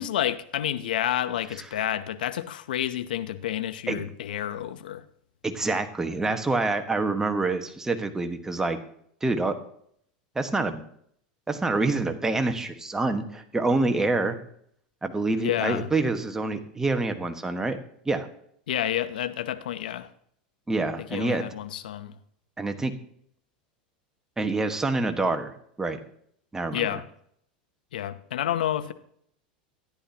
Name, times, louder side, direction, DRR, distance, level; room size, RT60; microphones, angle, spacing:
voice 1, 0.0-5.0 15.4-15.9 18.7-20.1 21.0-22.1 26.7-27.0 27.9-28.9, left 11 dB, 80° left, 12 dB, 0.8 m, -29 dB
voice 2, 5.4-8.8 9.2-9.6 10.3-10.8 11.5-14.4 15.0-17.8 18.0-18.3 20.7-21.4 22.6-22.9 24.4-25.5 25.8-26.0 26.5-26.9, right 3 dB, 10° right, 6 dB, 1.4 m, -26 dB
14.0 x 10.0 x 2.9 m, 0.66 s
hypercardioid pair, 100°, 5 cm